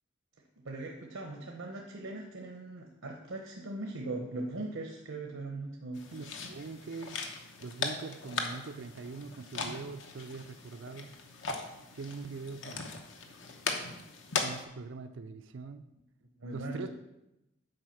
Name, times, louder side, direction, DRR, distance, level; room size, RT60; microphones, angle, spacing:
voice 1, 0.6-6.0 16.4-16.9, right 2 dB, 80° right, 1 dB, 0.9 m, -40 dB
sound 1, 5.9-14.6, left 4 dB, 65° left, 0.9 m, -39 dB
voice 2, 6.1-7.3 7.6-11.2 11.9-12.9 14.4-15.9 16.5-16.9, right 4 dB, 65° right, 10 dB, 0.4 m, -42 dB
7.8 x 4.8 x 5.8 m, 0.92 s
head